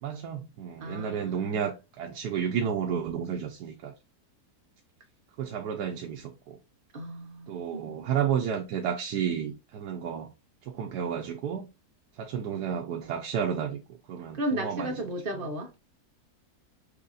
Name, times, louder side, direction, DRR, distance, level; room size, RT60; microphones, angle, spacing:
voice 1, 0.0-3.9 5.4-6.6 7.5-10.3 10.6-11.7 12.2-14.9, right 8 dB, 90° right, 1.3 m, -31 dB
voice 2, 0.8-1.6 6.9-8.0 14.3-15.7, right 1 dB, 40° right, 1.1 m, -34 dB
6.5 x 2.9 x 2.5 m
omnidirectional pair, 1.7 m